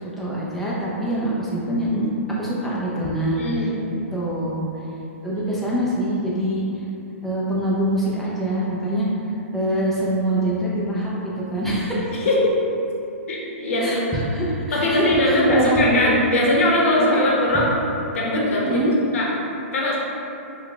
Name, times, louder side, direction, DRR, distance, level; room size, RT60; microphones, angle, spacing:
voice 1, 0.2-2.1 2.4-3.4 4.1-4.7 5.2-6.6 7.2-9.1 9.5-12.0 13.8-16.3 17.1-17.2 18.6-18.9, right 1 dB, 5° left, -8 dB, 0.6 m, -24 dB
voice 2, 3.3-3.8 5.3-5.7 12.1-12.5 13.3-14.0 14.7-17.7 18.1-18.8 19.1-19.3 19.7-20.0, left 1 dB, 70° left, -4 dB, 0.9 m, -20 dB
4.6 x 2.3 x 2.3 m, 2.8 s
hypercardioid pair, 140°, 8 cm